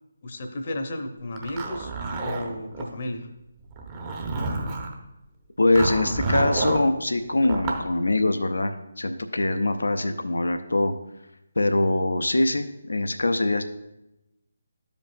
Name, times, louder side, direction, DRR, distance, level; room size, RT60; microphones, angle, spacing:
voice 1, 0.2-1.9 2.2-3.3, left 1 dB, 40° left, 5 dB, 0.9 m, -33 dB
Zipper (clothing), 1.4-2.9 3.7-4.9 5.8-6.9 7.4-7.9, right 3 dB, 25° right, 0.9 m, -29 dB
voice 2, 5.6-10.9 11.6-13.6, left 2 dB, 65° left, 7 dB, 0.5 m, -23 dB
13.5 x 5.2 x 2.5 m, 0.91 s
figure-of-eight pair, 145°, 0 cm